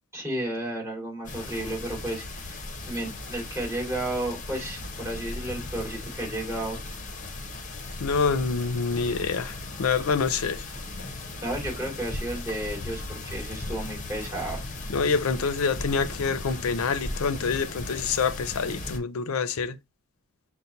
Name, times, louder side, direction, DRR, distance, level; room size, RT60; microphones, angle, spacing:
voice 1, 0.1-2.6 2.8-6.8 11.4-14.6, right 1 dB, 10° right, 2.3 m, -32 dB
sound 1, 1.2-19.0, left 2 dB, 35° left, 0.7 m, -37 dB
voice 2, 8.0-10.7 14.9-19.8, left 5 dB, 75° left, 0.5 m, -26 dB
5.7 x 2.1 x 3.9 m
head